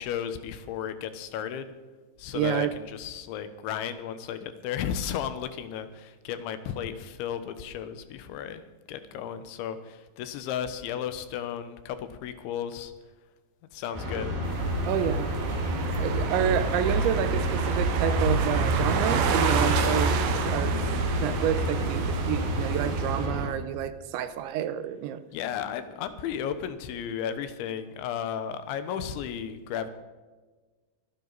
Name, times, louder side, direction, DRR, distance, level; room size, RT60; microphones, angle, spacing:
voice 1, 0.0-1.7 2.2-8.6 8.9-12.9 13.7-14.3 25.3-29.9, left 9 dB, 80° left, 11 dB, 3.3 m, -34 dB
voice 2, 2.3-2.7 14.9-15.3 16.0-20.8 21.2-25.2, right 10 dB, 85° right, 12 dB, 3.0 m, -29 dB
sound 1, 13.9-23.5, left 1 dB, 50° right, 7.7 m, -31 dB
sound 2, 14.4-23.3, right 4 dB, 70° right, 2.1 m, -27 dB
24.5 x 10.0 x 4.1 m, 1.3 s
omnidirectional pair, 5.4 m